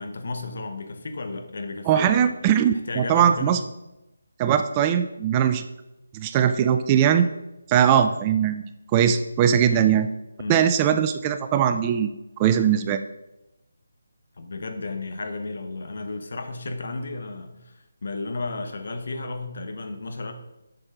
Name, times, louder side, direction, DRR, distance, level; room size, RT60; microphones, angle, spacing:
voice 1, 0.0-2.3 2.9-3.6 9.7-9.9 10.4-10.6 14.4-20.3, left 3 dB, 60° left, 6 dB, 1.1 m, -33 dB
voice 2, 1.9-3.6 4.4-5.6 6.1-7.3 7.7-10.1 10.5-12.1 12.4-13.0, right 9 dB, 20° right, 9 dB, 0.4 m, -20 dB
7.7 x 6.2 x 3.7 m, 0.94 s
figure-of-eight pair, 155°, 0 cm